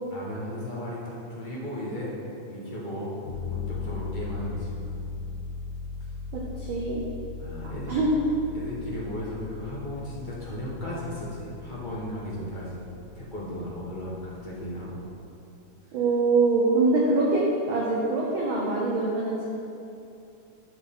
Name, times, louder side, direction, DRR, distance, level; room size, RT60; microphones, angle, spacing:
voice 1, 0.1-2.1 2.4-3.1 3.5-4.7 7.4-7.9 8.5-12.8 13.1-15.0, left 1 dB, 30° left, -7 dB, 0.8 m, -35 dB
sound 1, 3.2-15.1, left 4 dB, 70° left, 3.2 m, -38 dB
voice 2, 6.3-7.0 7.9-8.1 15.9-19.4, right 3 dB, 70° right, -4 dB, 1.2 m, -24 dB
11.0 x 6.2 x 3.8 m, 2.7 s
omnidirectional pair, 3.4 m